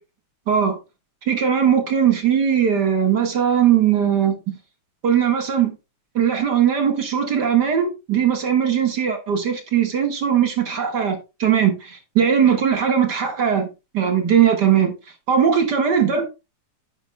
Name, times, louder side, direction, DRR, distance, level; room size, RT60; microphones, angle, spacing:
voice 1, 0.5-0.8 1.3-4.4 5.0-5.8 6.1-13.7 13.9-14.9 15.3-16.3, right 8 dB, 40° right, 1.8 m, -19 dB
10.0 x 10.0 x 2.2 m
omnidirectional pair, 3.5 m